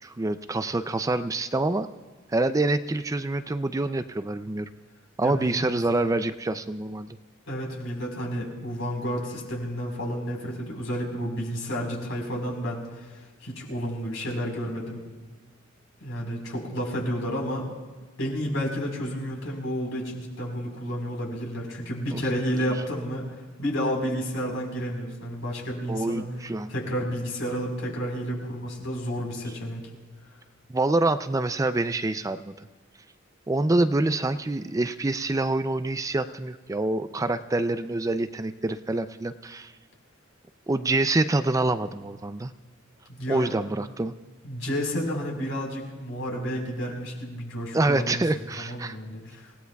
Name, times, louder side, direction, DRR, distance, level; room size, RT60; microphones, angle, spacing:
voice 1, 0.0-1.9 2.3-4.7 5.2-7.2 22.1-22.2 22.6-22.7 25.9-26.7 30.7-32.5 33.5-39.7 40.7-42.5 43.3-44.1 47.7-49.0, right 2 dB, 15° right, 11 dB, 0.4 m, -26 dB
voice 2, 5.2-5.6 7.5-13.1 13.4-15.0 16.0-17.7 18.2-23.2 23.6-26.3 26.7-29.8 43.1-43.5 44.4-48.2 48.5-49.5, equal, 80° left, -1 dB, 4.4 m, -31 dB
28.5 x 17.0 x 2.3 m, 1.4 s
head